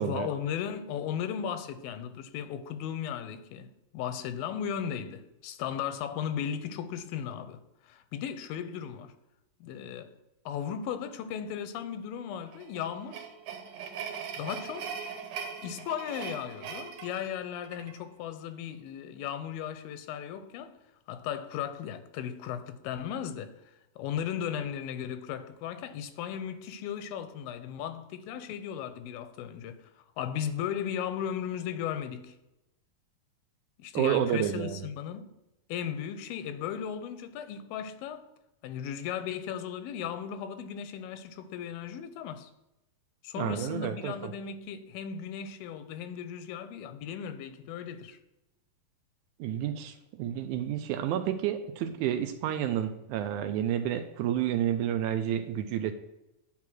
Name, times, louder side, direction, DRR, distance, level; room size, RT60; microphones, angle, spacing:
voice 1, 0.0-9.1 9.6-10.1 10.5-13.3 14.4-15.0 15.6-20.8 21.1-29.8 30.2-32.4 33.8-35.4 35.7-38.3 38.6-42.5 43.2-48.2, left 8 dB, 90° left, 2.5 m, -36 dB
sound 1, 12.5-18.0, right 6 dB, 70° right, 2.2 m, -40 dB
voice 2, 33.9-34.8 43.4-44.3 49.4-55.9, right 10 dB, 85° right, 1.7 m, -30 dB
9.7 x 3.6 x 6.0 m
omnidirectional pair, 4.0 m